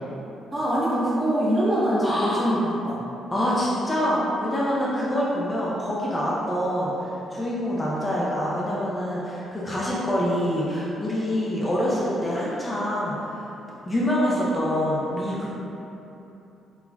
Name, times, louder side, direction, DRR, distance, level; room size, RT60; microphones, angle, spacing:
voice 1, 0.5-3.0, right 1 dB, 25° right, -8 dB, 0.8 m, -23 dB
voice 2, 2.0-2.5 3.3-13.5 13.9-15.5, equal, 20° left, -7 dB, 0.5 m, -25 dB
4.1 x 2.1 x 2.2 m, 3.0 s
cardioid pair, 90°, 0 cm